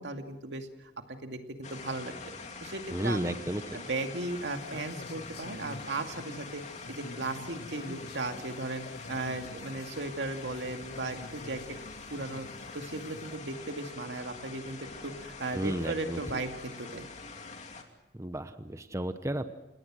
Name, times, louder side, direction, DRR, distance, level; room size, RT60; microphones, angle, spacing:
voice 1, 0.0-2.1 2.6-3.4 3.7-6.6 6.9-11.8 12.1-12.5 12.7-17.1, right 2 dB, 85° right, 5 dB, 2.4 m, -36 dB
sound 1, 1.6-17.8, left 4 dB, 40° left, 2.8 m, -45 dB
voice 2, 2.9-3.8 15.5-16.2 18.1-19.5, right 1 dB, 15° right, 10 dB, 1.0 m, -33 dB
sound 2, 4.2-13.4, left 2 dB, 65° left, 1.1 m, -48 dB
30.0 x 18.5 x 6.3 m, 0.92 s
head